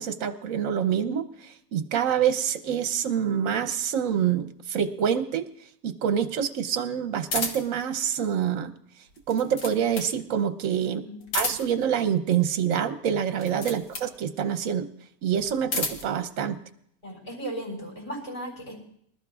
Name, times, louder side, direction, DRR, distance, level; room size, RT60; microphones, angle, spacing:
voice 1, 0.0-5.5 5.8-8.7 9.3-11.0 11.3-14.9 15.2-16.6, right 8 dB, 65° right, 9 dB, 1.2 m, -26 dB
sound 1, 7.3-7.8 9.1-10.2 11.2-11.9 13.3-14.1 15.4-16.1, left 3 dB, 85° left, 2.0 m, -31 dB
voice 2, 10.8-11.3 17.0-18.8, right 1 dB, 20° left, -2 dB, 5.2 m, -36 dB
25.0 x 13.0 x 2.4 m, 0.69 s
omnidirectional pair, 1.6 m